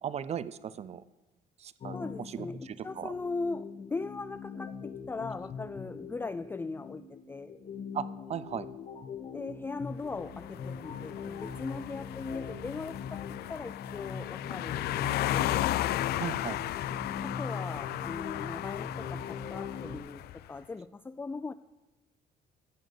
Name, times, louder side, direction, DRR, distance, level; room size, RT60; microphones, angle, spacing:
voice 1, 0.0-1.0 1.6-3.1 7.9-8.7 16.2-16.6, right 8 dB, 40° right, 16 dB, 0.7 m, -37 dB
sound 1, 1.8-20.0, left 5 dB, 45° left, 1.9 m, -42 dB
voice 2, 1.9-7.6 9.3-15.6 17.2-21.5, left 3 dB, 15° left, 13 dB, 0.4 m, -39 dB
sound 2, 10.1-20.4, left 14 dB, 70° left, 0.5 m, -35 dB
15.5 x 6.4 x 8.3 m, 1.1 s
cardioid pair, 110°, 17 cm